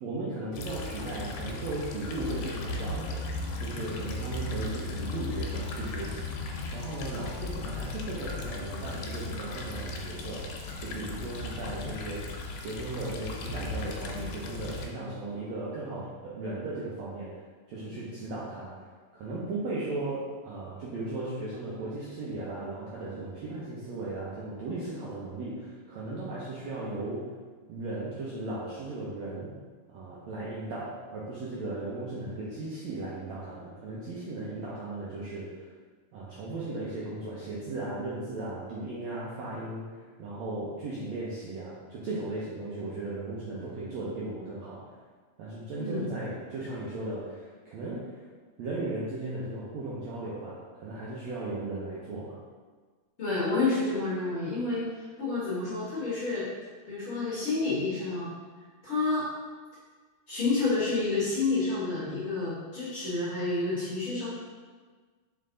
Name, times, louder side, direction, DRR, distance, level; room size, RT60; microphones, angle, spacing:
voice 1, 0.0-3.2 3.6-17.4 17.7-18.8 19.1-27.3 27.7-29.5 29.9-35.7 36.1-44.9 45.4-48.2 48.6-52.4, right 2 dB, 75° right, -8 dB, 1.6 m, -36 dB
sound 1, 0.5-14.9, left 2 dB, 80° left, 2.5 m, -36 dB
voice 2, 53.2-56.4 56.8-58.3 58.8-59.3 60.3-64.3, left 3 dB, 55° left, -10 dB, 1.6 m, -29 dB
5.6 x 4.4 x 3.8 m, 1.5 s
omnidirectional pair, 4.2 m